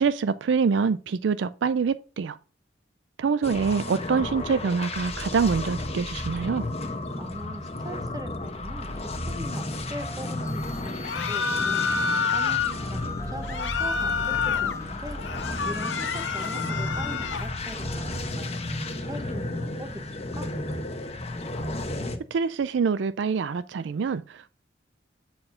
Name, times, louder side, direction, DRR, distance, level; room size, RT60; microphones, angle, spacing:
voice 1, 0.0-2.4 3.2-6.7 22.3-24.6, right 5 dB, 70° right, 0.4 m, -25 dB
sound 1, 3.4-22.2, left 2 dB, 35° left, 1.1 m, -33 dB
voice 2, 7.2-11.9 12.2-15.2 15.6-20.5, equal, 20° right, 1.1 m, -41 dB
sound 2, 10.0-15.2, left 2 dB, 15° left, 0.8 m, -44 dB
sound 3, 11.0-12.8 13.4-14.8 15.2-17.5, left 5 dB, 80° left, 0.8 m, -28 dB
7.6 x 4.5 x 5.6 m
head